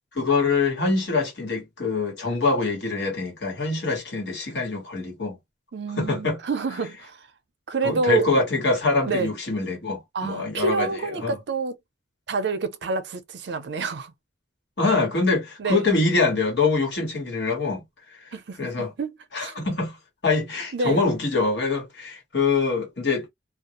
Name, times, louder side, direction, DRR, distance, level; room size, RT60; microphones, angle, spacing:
voice 1, 0.1-5.4 6.0-6.4 7.8-10.9 11.2-11.4 14.8-17.8 18.6-18.9 19.3-20.0 20.2-23.3, left 3 dB, 70° left, 1.2 m, -24 dB
voice 2, 5.7-7.2 7.7-8.3 9.0-9.3 10.1-11.8 12.3-14.1 15.6-15.8 18.3-19.7 20.7-21.0, right 4 dB, 70° right, 0.5 m, -28 dB
2.3 x 2.0 x 2.8 m
head